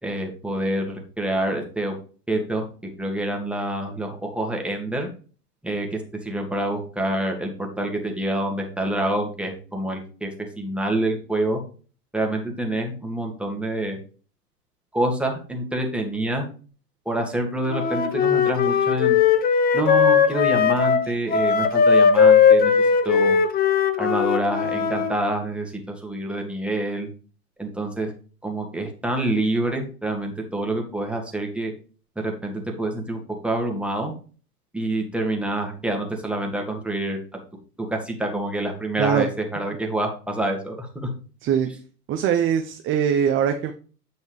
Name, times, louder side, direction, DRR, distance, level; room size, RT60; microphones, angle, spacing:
voice 1, 0.0-2.0 2.3-2.7 3.0-5.1 5.6-10.3 10.6-11.6 12.1-14.0 14.9-16.5 17.1-19.2 19.7-22.7 23.1-23.4 24.0-27.1 27.6-28.1 28.4-31.7 32.2-34.1 34.7-37.2 37.8-41.1, right 1 dB, ahead, 2 dB, 2.0 m, -27 dB
Wind instrument woodwind instrument, 17.7-25.1, left 6 dB, 20° left, 0.8 m, -18 dB
voice 2, 42.1-43.7, right 8 dB, 25° right, 6 dB, 0.8 m, -22 dB
8.7 x 6.3 x 3.2 m, 0.39 s
hypercardioid pair, 105°, 46 cm